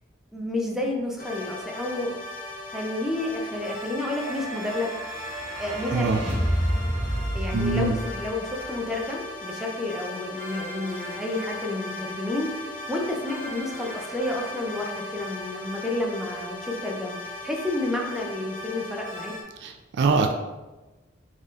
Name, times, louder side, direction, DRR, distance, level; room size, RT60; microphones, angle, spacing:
voice 1, 0.3-2.2 2.7-4.9 5.6-6.3 7.3-19.3, left 2 dB, ahead, -1 dB, 0.4 m, -30 dB
sound 1, 1.2-19.4, left 1 dB, 45° left, 0.7 m, -38 dB
sound 2, 4.0-8.7, equal, 85° right, 1.1 m, -30 dB
voice 2, 7.5-7.9 19.6-19.7 20.0-20.3, right 4 dB, 60° right, 5 dB, 0.3 m, -22 dB
3.6 x 2.6 x 3.2 m, 1.1 s
head